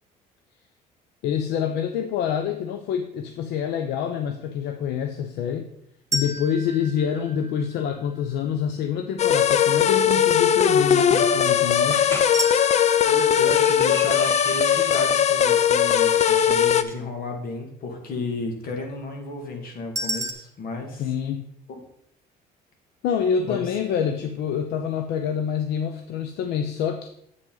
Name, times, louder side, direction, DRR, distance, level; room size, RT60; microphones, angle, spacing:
voice 1, 1.2-5.7 6.1-12.2 21.0-21.5 23.0-27.1, left 8 dB, 80° left, 7 dB, 0.7 m, -26 dB
sound 1, 6.1-8.2 12.3-15.4 20.0-20.3, right 1 dB, 20° right, 0.9 m, -33 dB
sound 2, 9.2-16.8, left 8 dB, 40° left, 0.5 m, -19 dB
sound 3, 11.9-12.3 13.0-15.2 15.7-17.0, equal, 15° left, 1.3 m, -38 dB
voice 2, 13.1-21.0 21.7-21.8 23.5-23.6, left 3 dB, 60° left, 3 dB, 2.2 m, -33 dB
7.8 x 7.5 x 3.9 m, 0.74 s
cardioid pair, 110°, 17 cm